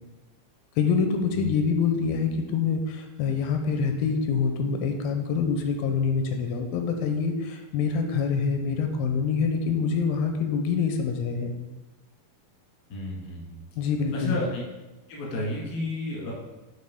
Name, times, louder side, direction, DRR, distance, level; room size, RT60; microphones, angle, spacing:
voice 1, 0.8-11.5 13.8-14.4, left 5 dB, 85° left, 5 dB, 2.4 m, -26 dB
voice 2, 12.9-13.6 14.1-14.6 15.1-16.3, left 2 dB, 40° left, -4 dB, 1.5 m, -31 dB
8.1 x 4.2 x 3.5 m, 1.1 s
omnidirectional pair, 4.2 m